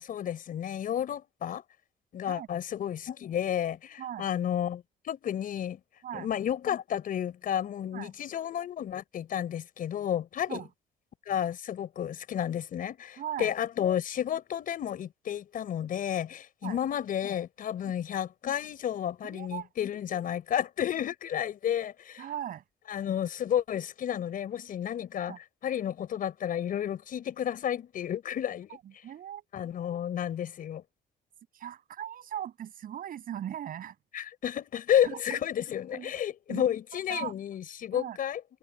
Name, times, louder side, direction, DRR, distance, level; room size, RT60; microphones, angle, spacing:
voice 1, 0.0-1.6 2.1-5.8 6.1-10.6 11.3-22.2 22.9-25.3 25.6-28.8 29.5-30.8 34.1-38.6, left 10 dB, 55° left, 6.1 m, -31 dB
voice 2, 13.2-13.5 16.6-16.8 17.8-17.9 19.2-19.7 22.2-22.6 25.2-25.4 28.9-29.4 31.5-34.0 35.0-35.4 35.9-36.1 36.5-36.7 37.1-37.3 37.9-38.2, right 10 dB, 55° right, 7.9 m, -39 dB
cardioid pair, 110°, 17 cm